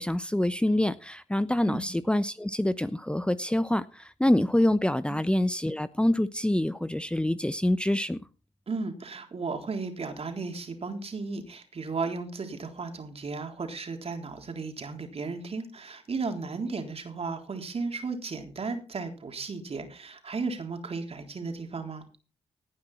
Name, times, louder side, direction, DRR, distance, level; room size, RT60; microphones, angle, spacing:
voice 1, 0.0-8.2, left 1 dB, 5° left, 14 dB, 1.0 m, -26 dB
voice 2, 8.7-22.1, right 4 dB, 45° right, 5 dB, 3.8 m, -35 dB
17.5 x 10.0 x 4.3 m, 0.34 s
hypercardioid pair, 40°, 14 cm